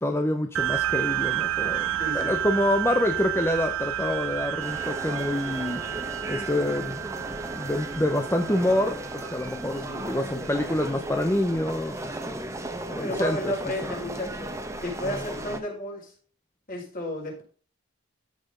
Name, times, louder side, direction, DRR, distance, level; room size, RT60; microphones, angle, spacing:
voice 1, 0.0-5.8 6.3-7.0 7.6-12.5 12.9-13.5 13.8-14.1, left 1 dB, 10° left, 5 dB, 0.7 m, -27 dB
sound 1, 0.6-11.4, right 12 dB, 90° right, 0.8 m, -31 dB
voice 2, 2.0-2.4 9.9-10.8 13.0-16.1 16.7-17.4, left 1 dB, 40° left, -3 dB, 5.0 m, -33 dB
sound 2, 4.6-15.6, right 1 dB, 15° right, 1.1 m, -36 dB
13.5 x 6.0 x 3.8 m, 0.41 s
head